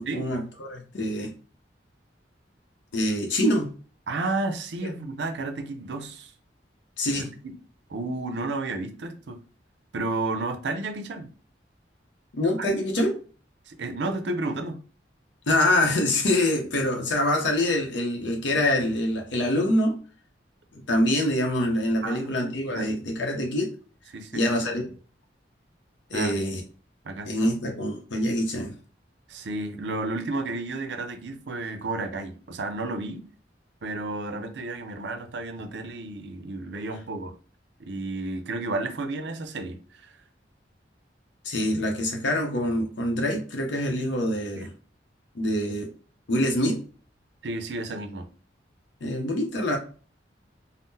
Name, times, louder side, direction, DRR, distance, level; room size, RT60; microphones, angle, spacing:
voice 1, 0.0-1.3 2.9-3.7 7.0-7.3 12.3-13.1 15.5-20.0 20.7-23.7 24.3-24.8 26.1-26.6 27.3-28.7 41.4-44.7 45.3-45.9 46.3-46.8 49.0-49.8, left 1 dB, 75° left, 0.7 m, -25 dB
voice 2, 4.1-6.3 7.1-7.5 7.9-9.4 9.9-11.3 12.6-12.8 13.7-14.8 22.0-23.1 24.1-24.5 26.1-26.3 27.0-27.3 29.3-33.2 33.8-37.3 37.8-40.1 44.6-44.7 47.4-48.3, right 2 dB, 70° right, 0.5 m, -32 dB
3.6 x 2.0 x 2.7 m
head